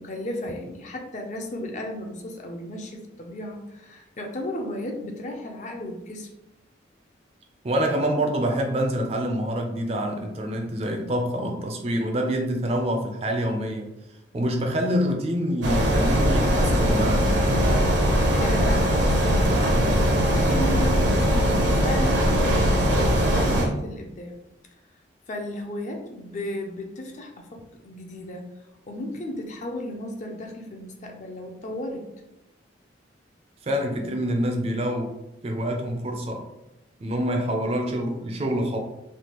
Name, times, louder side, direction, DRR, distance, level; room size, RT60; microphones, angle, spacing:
voice 1, 0.0-6.3 17.6-24.3 25.3-32.1, left 1 dB, 40° left, 2 dB, 0.4 m, -35 dB
voice 2, 7.6-13.9 14.3-17.3 33.6-35.1 35.4-36.5 37.0-38.8, equal, 35° right, 2 dB, 0.4 m, -26 dB
sound 1, 15.6-23.7, equal, 70° right, 0.6 m, -21 dB
3.3 x 2.2 x 2.9 m, 0.91 s
head